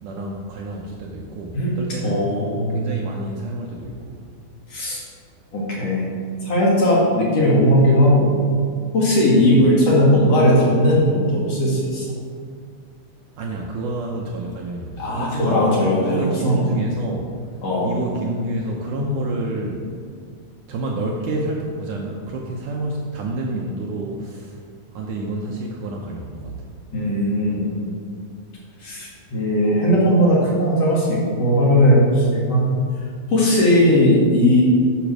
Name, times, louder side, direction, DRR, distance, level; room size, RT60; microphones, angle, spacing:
voice 1, 0.0-2.3 2.7-4.2 9.3-9.7 13.4-15.7 16.0-17.3 17.8-19.8 20.7-24.6 24.9-26.5, right 2 dB, 75° right, 0 dB, 2.0 m, -28 dB
voice 2, 2.0-2.8 4.7-5.0 5.5-6.1 6.4-8.3 8.9-12.1 15.0-16.6 17.6-17.9 19.0-19.2 26.9-27.7 28.8-32.8 33.3-34.6, equal, 50° left, -6 dB, 2.8 m, -18 dB
10.0 x 6.3 x 6.2 m, 2.1 s
omnidirectional pair, 4.3 m